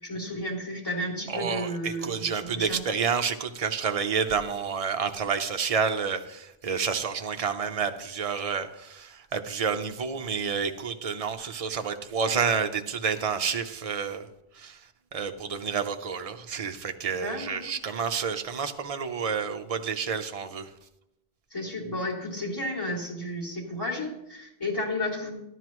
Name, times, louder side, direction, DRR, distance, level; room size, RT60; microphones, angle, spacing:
voice 1, 0.0-2.8 17.2-17.7 21.5-25.3, left 1 dB, 20° left, -2 dB, 3.0 m, -32 dB
voice 2, 1.3-14.3 14.5-14.8 15.1-20.7, right 6 dB, 40° right, 7 dB, 0.8 m, -29 dB
13.0 x 12.5 x 3.1 m, 0.86 s
omnidirectional pair, 1.1 m